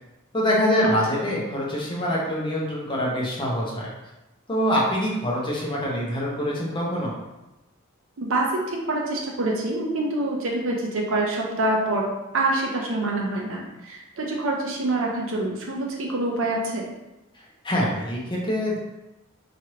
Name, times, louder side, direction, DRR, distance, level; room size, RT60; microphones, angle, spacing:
voice 1, 0.3-3.9 4.5-7.1 17.6-18.8, equal, 20° left, -4 dB, 0.6 m, -25 dB
voice 2, 8.2-16.9, right 2 dB, 65° right, -1 dB, 0.6 m, -26 dB
3.0 x 2.5 x 2.9 m, 1.0 s
head